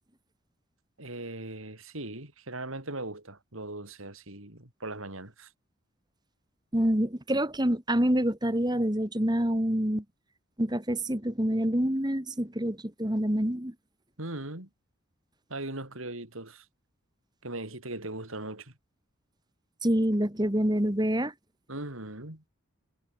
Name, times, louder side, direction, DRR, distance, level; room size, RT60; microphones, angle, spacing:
voice 1, 1.0-5.5 14.2-14.7 15.5-16.6 17.4-18.7 21.7-22.4, right 2 dB, 75° right, 4.9 m, -39 dB
voice 2, 6.7-10.0 10.6-13.7 19.8-21.3, equal, 20° right, 2.0 m, -27 dB
head